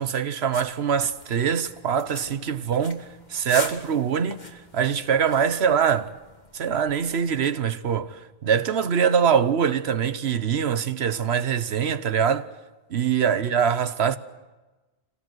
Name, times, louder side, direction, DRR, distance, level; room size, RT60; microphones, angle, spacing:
voice 1, 0.0-4.5 4.7-6.1 6.5-12.5 12.9-14.2, right 7 dB, 85° right, 1.2 m, -23 dB
sound 1, 0.5-7.5, left 2 dB, 45° left, 2.0 m, -42 dB
26.5 x 17.5 x 7.9 m
omnidirectional pair, 1.1 m